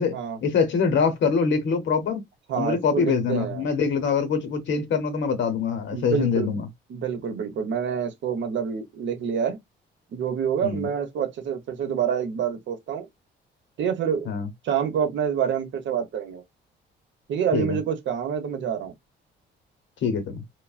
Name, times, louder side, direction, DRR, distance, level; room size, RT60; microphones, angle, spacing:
voice 1, 0.4-2.2 2.6-6.7 10.6-10.9 14.3-14.5 17.5-17.8 20.0-20.4, left 5 dB, 70° left, 0.8 m, -24 dB
voice 2, 2.5-3.7 5.9-6.6 6.9-9.6 10.1-13.1 13.8-14.3 14.6-16.4 17.3-18.9, right 8 dB, 70° right, 0.8 m, -27 dB
3.2 x 2.1 x 2.4 m
cardioid pair, 90°, 20 cm